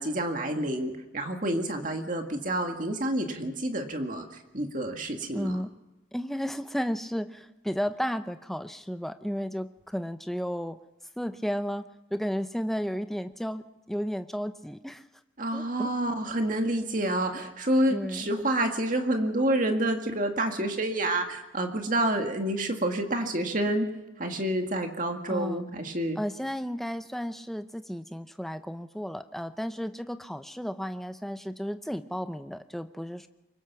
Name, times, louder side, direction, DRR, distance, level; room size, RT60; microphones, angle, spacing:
voice 1, 0.0-5.6 15.4-23.9 24.2-26.2, right 1 dB, 45° right, 4 dB, 2.0 m, -28 dB
voice 2, 5.3-5.7 6.1-10.8 11.2-11.9 12.1-15.0 15.5-15.9 17.9-18.3 25.3-25.6 26.2-33.3, equal, ahead, 9 dB, 0.7 m, -33 dB
24.5 x 22.0 x 6.0 m, 0.99 s
head